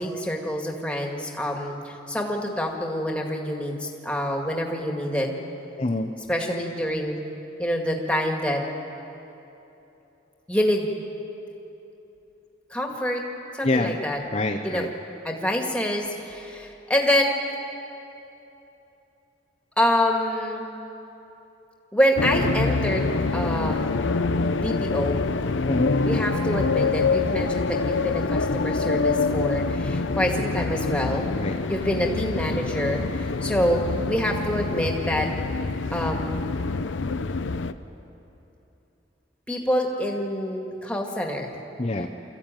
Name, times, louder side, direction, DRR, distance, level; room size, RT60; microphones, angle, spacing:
voice 1, 0.0-5.4 6.3-7.2 7.6-8.6 10.5-10.9 12.7-13.2 13.5-14.2 14.6-14.9 15.2-17.3 19.8-20.7 21.9-23.8 24.6-25.2 26.0-31.3 31.7-35.4 35.9-36.4 39.5-41.5, equal, 5° left, 1 dB, 1.9 m, -26 dB
voice 2, 5.8-6.1 13.6-14.0 14.3-14.9 25.7-26.0 31.4-31.5 41.8-42.1, left 2 dB, 35° left, 2 dB, 0.7 m, -25 dB
sound 1, 22.2-37.7, left 3 dB, 90° left, 0.7 m, -26 dB
25.5 x 14.5 x 9.1 m, 3.0 s
head